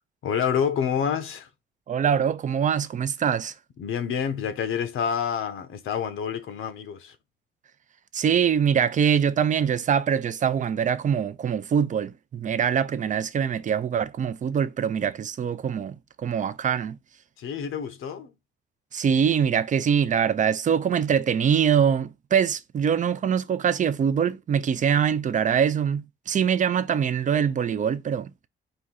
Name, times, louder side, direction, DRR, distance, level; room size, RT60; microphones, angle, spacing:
voice 1, 0.2-1.5 3.8-7.2 17.4-18.3, left 7 dB, 75° left, 0.8 m, -28 dB
voice 2, 1.9-3.5 8.1-17.0 18.9-28.3, right 7 dB, 40° right, 0.4 m, -23 dB
4.4 x 2.7 x 3.7 m
cardioid pair, 115°, 21 cm